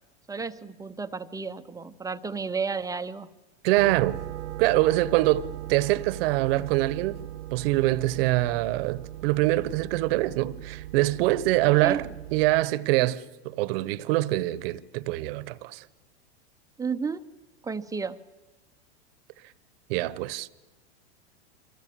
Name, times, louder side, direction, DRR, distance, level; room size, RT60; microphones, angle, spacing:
voice 1, 0.3-3.3 11.8-12.0 16.8-17.2 17.6-18.2, right 5 dB, 10° right, 0.8 m, -32 dB
voice 2, 3.6-4.2 4.6-7.2 7.5-15.8 19.9-20.5, right 17 dB, 55° right, 1.1 m, -24 dB
sound 1, 3.8-12.6, right 14 dB, 85° right, 0.9 m, -39 dB
29.5 x 24.5 x 7.6 m
hypercardioid pair, 115°, 34 cm